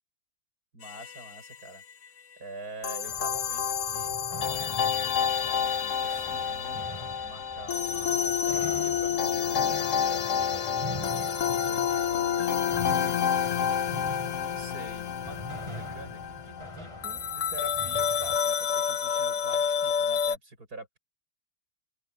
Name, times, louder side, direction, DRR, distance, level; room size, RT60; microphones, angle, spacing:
voice 1, 0.7-1.8 2.4-4.2 4.5-4.7 5.1-13.3 14.5-21.0, right 2 dB, 85° right, 7.5 m, -46 dB
sound 1, 0.8-1.5 2.8-20.4, left 7 dB, 60° left, 1.3 m, -29 dB
sound 2, 3.1-18.4, equal, 20° right, 7.8 m, -43 dB
open air
omnidirectional pair, 1.6 m